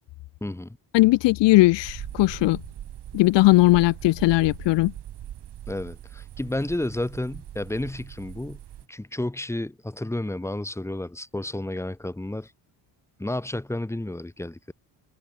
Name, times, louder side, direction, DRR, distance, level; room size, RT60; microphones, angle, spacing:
voice 1, 0.4-0.8 5.7-8.6 8.9-12.5 13.2-14.7, left 1 dB, 5° left, 1.1 m, -31 dB
voice 2, 0.9-2.6 3.1-4.9, left 19 dB, 80° left, 0.6 m, -18 dB
sound 1, 1.8-8.8, right 11 dB, 65° right, 2.7 m, -41 dB
cardioid pair, 100°, 42 cm